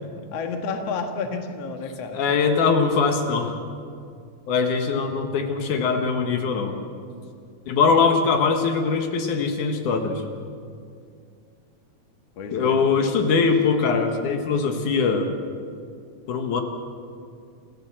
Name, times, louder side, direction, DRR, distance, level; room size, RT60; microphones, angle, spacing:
voice 1, 0.3-2.2 12.4-12.8, left 4 dB, 55° left, 4 dB, 2.5 m, -30 dB
voice 2, 2.1-3.6 4.5-6.8 7.7-10.2 12.5-15.3 16.3-16.6, left 5 dB, 75° left, 4 dB, 2.9 m, -22 dB
27.0 x 15.5 x 7.5 m, 2.3 s
omnidirectional pair, 3.6 m